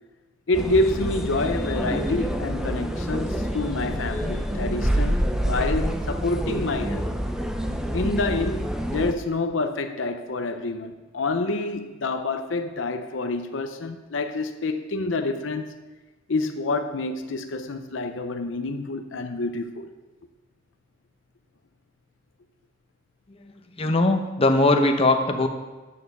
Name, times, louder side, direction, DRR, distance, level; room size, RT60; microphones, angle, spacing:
voice 1, 0.5-7.1 7.9-15.7 16.3-19.9, left 2 dB, 70° left, 7 dB, 0.7 m, -27 dB
sound 1, 0.5-9.1, equal, 5° right, 0.6 m, -27 dB
voice 2, 23.8-25.5, left 2 dB, 30° left, 5 dB, 0.8 m, -20 dB
8.6 x 7.2 x 6.7 m, 1.2 s
head